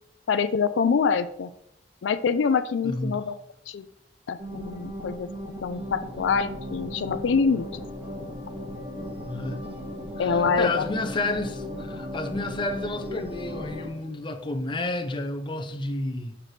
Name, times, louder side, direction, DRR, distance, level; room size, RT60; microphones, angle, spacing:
voice 1, 0.3-1.5 2.0-3.3 3.7-3.9 4.3-5.3 5.6-7.8 10.2-10.8, left 5 dB, 85° left, 0.4 m, -25 dB
voice 2, 2.8-3.2 9.3-9.6 10.2-16.4, left 2 dB, 25° left, 0.6 m, -30 dB
sound 1, 4.4-13.9, left 1 dB, 30° right, 1.8 m, -36 dB
6.5 x 5.8 x 3.2 m
head